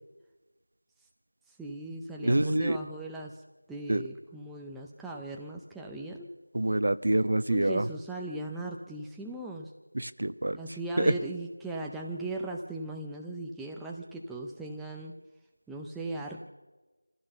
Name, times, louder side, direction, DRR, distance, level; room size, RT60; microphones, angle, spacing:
voice 1, 1.6-3.4 3.7-6.3 7.5-9.7 10.5-15.1 15.7-16.5, right 2 dB, ahead, -2 dB, 0.6 m, -38 dB
voice 2, 2.2-2.8 3.9-4.0 6.5-7.9 9.9-10.6 11.0-11.1, right 1 dB, 55° right, 13 dB, 1.0 m, -26 dB
26.5 x 15.0 x 6.8 m, 1.2 s
figure-of-eight pair, 175°, 0 cm